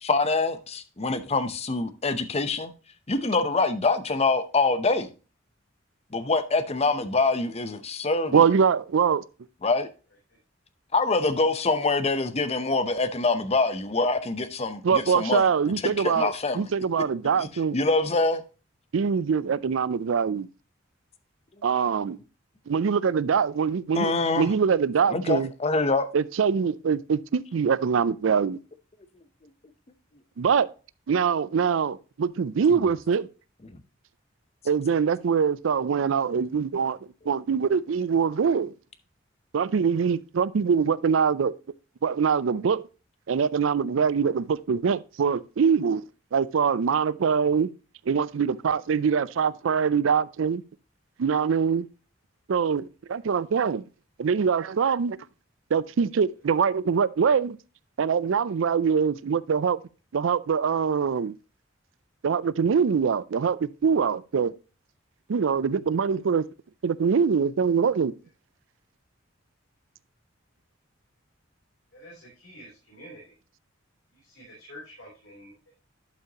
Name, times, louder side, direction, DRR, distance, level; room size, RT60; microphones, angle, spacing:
voice 1, 0.0-2.7 3.1-5.1 6.1-8.4 9.6-9.9 10.9-15.5 15.8-16.7 17.4-18.4 23.9-24.5 25.1-26.1 32.7-32.8 33.6-33.8, left 3 dB, 30° left, 0.7 m, -25 dB
voice 2, 8.3-9.2 14.8-17.8 18.9-20.5 21.6-22.2 22.7-25.5 26.1-28.6 30.4-30.7 31.1-33.3 34.7-37.0 37.3-38.7 39.5-41.5 42.0-42.8 43.3-46.0 46.3-47.7 48.1-50.6 51.2-51.9 52.5-53.8 54.2-55.2 55.7-57.6 58.0-59.8 60.1-61.4 62.2-64.5 65.3-66.5 66.8-68.1, right 6 dB, 75° right, 0.4 m, -23 dB
voice 3, 71.9-73.4 74.1-75.7, equal, 70° left, 3.4 m, -48 dB
11.5 x 5.7 x 2.9 m
head